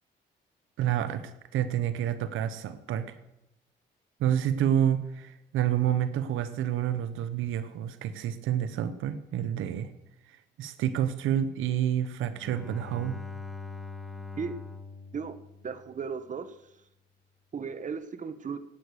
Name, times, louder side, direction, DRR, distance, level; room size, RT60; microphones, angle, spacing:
voice 1, 0.8-3.2 4.2-9.9 10.3-13.2, right 10 dB, 85° right, 11 dB, 1.0 m, -29 dB
Bowed string instrument, 12.3-16.1, left 4 dB, ahead, 1.9 m, -42 dB
voice 2, 15.6-16.6 17.5-18.6, right 6 dB, 40° right, 10 dB, 1.2 m, -35 dB
18.0 x 8.3 x 6.4 m, 0.89 s
cardioid pair, 90°, 20 cm